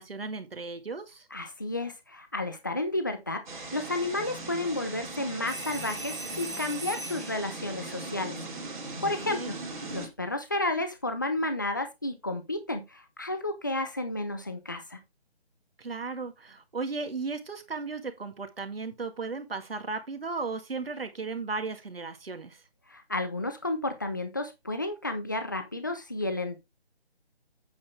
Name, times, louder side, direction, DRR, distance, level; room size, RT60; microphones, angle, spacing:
voice 1, 0.0-1.3 9.3-9.5 15.8-22.6, right 4 dB, 65° right, 1.9 m, -35 dB
voice 2, 1.3-8.4 9.0-9.6 9.9-15.0 22.9-26.6, left 2 dB, 20° left, 0.7 m, -32 dB
sound 1, 3.5-10.1, right 3 dB, 45° right, 2.7 m, -39 dB
sound 2, 5.5-7.5 9.8-10.1, right 1 dB, 25° right, 0.8 m, -39 dB
8.6 x 6.3 x 3.5 m
figure-of-eight pair, 170°, 32 cm